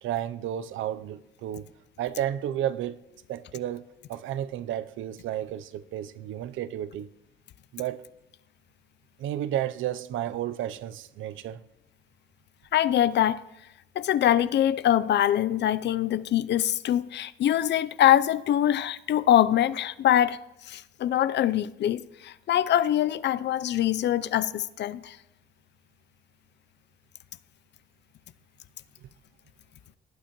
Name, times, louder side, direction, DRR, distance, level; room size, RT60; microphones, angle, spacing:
voice 1, 0.0-1.7 2.0-3.0 3.3-7.1 7.7-8.0 9.2-11.6, right 11 dB, 80° right, 0.5 m, -32 dB
voice 2, 12.7-13.4 14.0-20.4 20.7-25.2, left 11 dB, 60° left, 0.5 m, -23 dB
18.5 x 9.0 x 3.0 m
cardioid pair, 90°, 20 cm